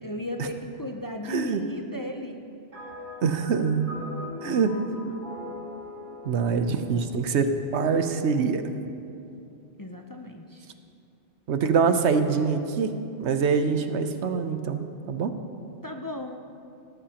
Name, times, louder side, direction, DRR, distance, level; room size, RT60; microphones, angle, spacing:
voice 1, 0.0-2.4 4.4-5.3 9.8-10.7 15.8-16.4, left 1 dB, 25° left, 3 dB, 0.5 m, -36 dB
voice 2, 1.3-1.6 3.2-3.9 4.4-4.7 6.2-8.6 11.5-12.9 13.2-15.3, right 5 dB, 85° right, 8 dB, 1.1 m, -24 dB
sound 1, 2.7-8.2, left 2 dB, 45° right, 3.6 m, -42 dB
18.0 x 13.5 x 2.9 m, 2.6 s
omnidirectional pair, 1.1 m